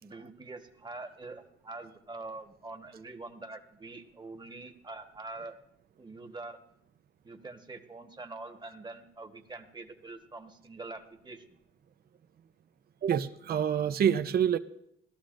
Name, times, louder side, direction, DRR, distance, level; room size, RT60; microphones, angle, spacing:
voice 1, 0.0-5.6 6.0-6.6 7.2-11.6, right 3 dB, 20° right, 5 dB, 1.3 m, -44 dB
voice 2, 13.0-14.6, right 8 dB, 50° right, 10 dB, 0.6 m, -27 dB
17.5 x 12.5 x 2.6 m, 0.77 s
cardioid pair, 90°, 20 cm